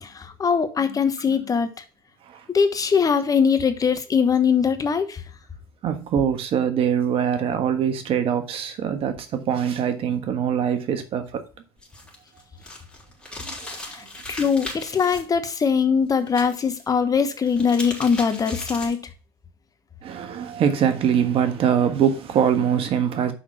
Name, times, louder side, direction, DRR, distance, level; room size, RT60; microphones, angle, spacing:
voice 1, 0.0-1.7 2.5-5.2 13.8-19.1, left 6 dB, 30° left, 1.1 m, -22 dB
voice 2, 5.8-11.4 13.4-13.8 20.0-23.3, right 8 dB, 50° right, 1.4 m, -23 dB
sound 1, 11.8-15.2 16.3-16.8 17.3-19.1, left 2 dB, 10° left, 4.0 m, -37 dB
5.9 x 5.6 x 5.6 m
hypercardioid pair, 80°, 12 cm